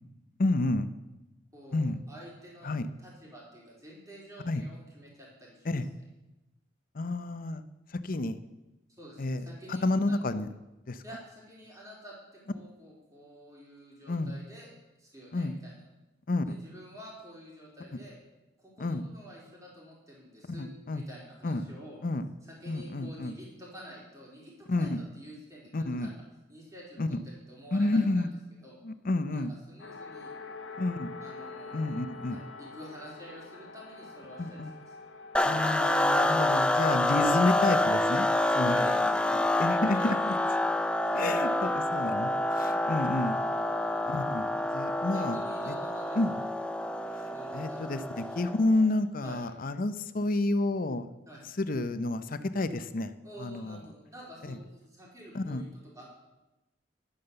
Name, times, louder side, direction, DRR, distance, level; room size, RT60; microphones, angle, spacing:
voice 1, 0.4-0.9 1.7-2.0 2.6-2.9 4.5-4.6 5.7-5.9 6.9-7.6 7.9-8.4 9.2-10.5 10.9-11.0 14.1-14.3 15.3-15.6 16.3-16.6 18.8-19.0 20.5-21.0 21.4-21.7 22.0-22.2 22.7-23.3 24.7-25.0 25.7-26.1 27.0-27.2 27.7-28.3 28.8-29.5 30.8-31.1 31.7-32.4 34.4-34.7 35.4-38.3 38.5-38.8 39.6-40.3 41.1-43.4 44.1-45.7 46.2-46.3 47.5-51.1 51.6-53.1 53.4-53.8 54.5-54.6 55.3-55.6, left 2 dB, 45° left, 12 dB, 0.7 m, -30 dB
voice 2, 1.5-2.7 3.0-5.7 9.0-10.2 11.0-14.7 15.0-15.8 16.5-18.2 18.6-22.0 22.4-24.9 25.1-26.1 26.5-28.3 28.6-28.8 29.3-30.3 31.2-32.0 32.3-34.8 38.7-40.2 41.1-41.4 43.3-43.6 45.1-46.4 47.0-48.2 49.2-49.5 51.3-51.4 53.2-55.7 55.9-56.1, equal, 20° right, -4 dB, 3.9 m, -49 dB
sound 1, 29.8-35.7, left 4 dB, 80° left, 1.1 m, -45 dB
sound 2, 35.3-48.7, left 1 dB, 5° left, 0.5 m, -27 dB
11.5 x 9.2 x 6.8 m, 1.0 s
head